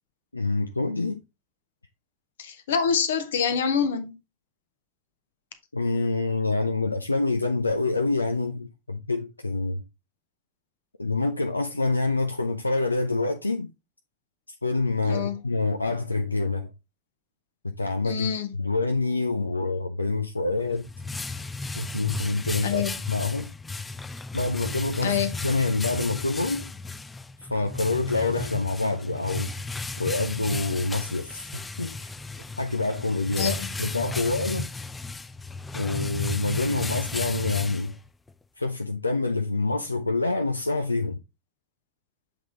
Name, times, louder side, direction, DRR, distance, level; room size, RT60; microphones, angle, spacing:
voice 1, 0.3-1.2 5.7-9.8 11.0-13.7 14.6-16.7 17.6-18.3 18.6-20.9 21.8-23.5 24.3-26.7 27.4-29.5 30.0-32.1 32.6-34.7 35.7-38.0 38.6-41.2, left 3 dB, 80° left, 0.5 m, -26 dB
voice 2, 2.4-4.1 15.0-15.4 18.0-18.5 22.6-23.0 25.0-25.3 33.4-33.7, left 7 dB, 60° left, 1.0 m, -26 dB
sound 1, 20.5-38.3, left 3 dB, 10° left, 0.3 m, -34 dB
7.4 x 3.5 x 3.8 m
figure-of-eight pair, 90°, 0 cm